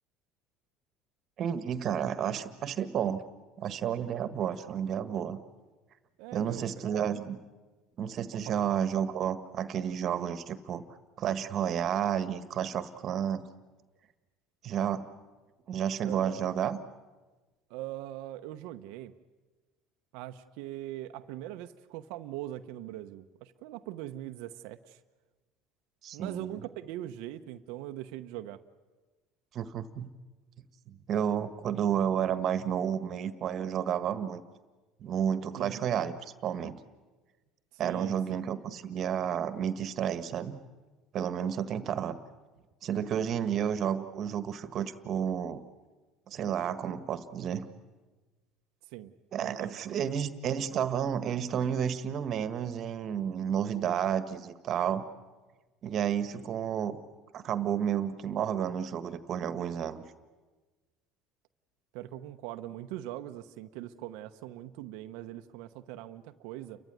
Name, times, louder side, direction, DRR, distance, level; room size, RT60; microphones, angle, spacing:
voice 1, 1.4-3.2 3.6-5.4 6.3-7.4 8.0-10.8 11.2-13.4 14.6-15.1 15.7-16.8 26.0-26.6 29.5-30.1 30.9-34.4 35.0-36.1 36.4-36.8 37.8-40.6 41.1-42.2 42.8-45.6 46.3-47.7 49.3-55.0 55.8-57.0 57.3-60.0, right 9 dB, 50° right, 12 dB, 1.5 m, -31 dB
voice 2, 6.2-6.6 8.5-8.6 16.0-16.4 17.7-19.1 20.1-25.0 26.1-28.6 35.6-35.9 37.7-38.4 48.9-49.1 49.4-49.8 61.9-66.8, right 14 dB, 75° right, 9 dB, 0.9 m, -41 dB
29.5 x 15.0 x 9.5 m, 1.3 s
supercardioid pair, 105°, 0 cm